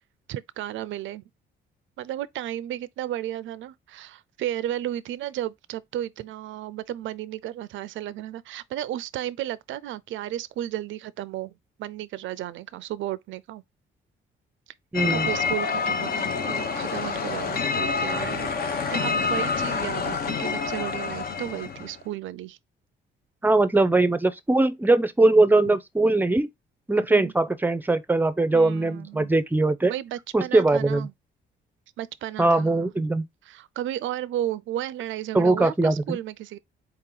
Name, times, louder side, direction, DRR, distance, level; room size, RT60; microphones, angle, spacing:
voice 1, 0.3-1.2 2.0-11.5 11.8-13.6 15.1-18.5 18.8-22.6 27.1-27.3 28.5-29.3 29.8-31.1 32.0-32.9 33.4-36.6, right 12 dB, 75° right, 0.5 m, -33 dB
sound 1, 14.9-22.0, left 5 dB, 50° left, 0.8 m, -27 dB
voice 2, 14.9-15.3 23.4-26.5 26.9-29.9 30.3-31.1 32.4-33.3 35.3-36.2, right 2 dB, 10° right, 0.5 m, -21 dB
4.3 x 2.9 x 3.8 m
cardioid pair, 90°, 20 cm